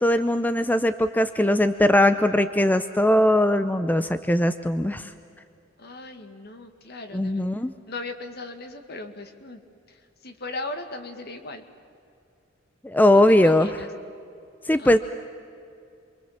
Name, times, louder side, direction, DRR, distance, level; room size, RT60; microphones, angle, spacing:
voice 1, 0.0-5.1 7.1-7.7 12.8-13.7 14.7-15.0, left 1 dB, 10° left, 10 dB, 0.6 m, -20 dB
voice 2, 5.8-7.5 7.9-9.6 9.9-11.6 13.1-13.9 14.8-14.9, left 2 dB, 55° left, 7 dB, 2.0 m, -38 dB
28.0 x 24.0 x 7.4 m, 2.5 s
head